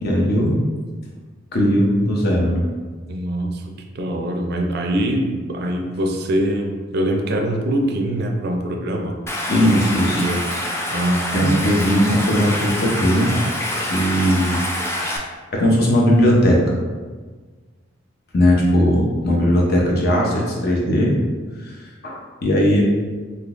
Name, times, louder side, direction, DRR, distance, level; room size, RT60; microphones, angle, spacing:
voice 1, 0.0-0.6 1.5-2.6 9.5-10.2 11.3-13.3 13.9-14.6 15.5-16.6 18.3-21.2 21.6-21.8 22.0-22.8, equal, 55° left, -2 dB, 0.7 m, -18 dB
voice 2, 3.1-3.6 3.9-9.2 9.6-9.8 10.1-10.4 10.9-11.6, right 1 dB, 60° right, 3 dB, 0.4 m, -23 dB
Stream, 9.3-15.2, left 1 dB, 15° left, 0.3 m, -26 dB
3.6 x 2.7 x 2.5 m, 1.4 s
head